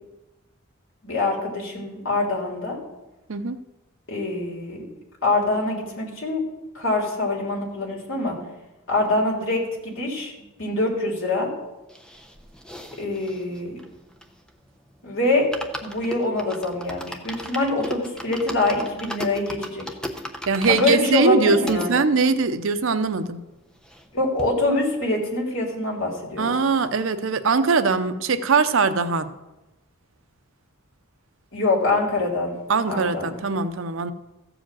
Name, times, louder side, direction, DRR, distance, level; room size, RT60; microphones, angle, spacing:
voice 1, 1.0-2.8 4.1-4.9 5.2-6.4 6.7-8.3 8.9-10.3 10.6-11.5 13.0-13.8 15.0-19.9 20.7-22.0 24.1-26.6 31.5-32.6 32.9-33.3, left 2 dB, 60° left, -2 dB, 3.4 m, -24 dB
sound 1, 11.9-14.7 15.0-15.1 15.3-21.9 22.5-22.6 22.7-22.8 23.1-24.1 24.4-24.5, equal, 5° left, 0.8 m, -37 dB
voice 2, 20.5-23.4 26.4-29.3 32.7-34.1, right 4 dB, 65° right, 11 dB, 0.6 m, -21 dB
14.5 x 5.0 x 7.6 m, 1.0 s
head